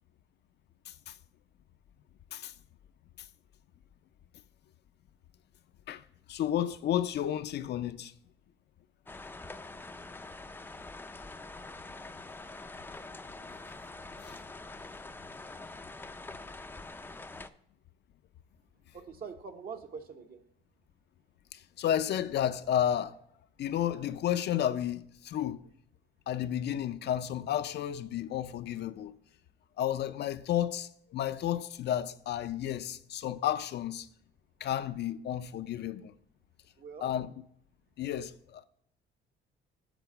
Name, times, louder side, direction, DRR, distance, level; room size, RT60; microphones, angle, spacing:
voice 1, 0.9-1.2 2.3-2.5 3.2-3.3 5.9-6.0 6.3-8.1 14.2-14.4 21.5-23.2 23.6-25.6 26.3-29.1 29.8-34.1 34.6-36.1 37.0-37.3 38.0-38.7, left 11 dB, 60° left, 0.5 m, -32 dB
sound 1, 9.1-17.5, left 2 dB, 10° left, 0.4 m, -45 dB
voice 2, 18.9-20.4 36.8-37.1, right 6 dB, 50° right, 1.0 m, -44 dB
8.0 x 4.1 x 6.8 m
cardioid pair, 95°, 19 cm